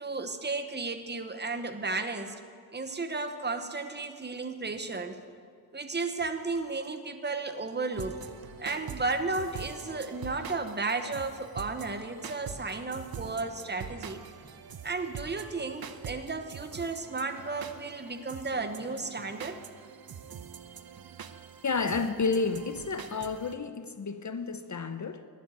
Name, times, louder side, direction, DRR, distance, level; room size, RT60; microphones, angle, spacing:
voice 1, 0.0-2.4 2.7-5.2 5.7-8.2 8.6-14.2 14.8-19.6, right 3 dB, 25° right, 8 dB, 1.0 m, -34 dB
sound 1, 7.9-23.6, right 7 dB, 55° right, 0.8 m, -44 dB
voice 2, 21.6-25.3, left 4 dB, 45° left, 10 dB, 0.7 m, -31 dB
12.0 x 9.9 x 9.2 m, 2.2 s
wide cardioid pair, 125°, 43 cm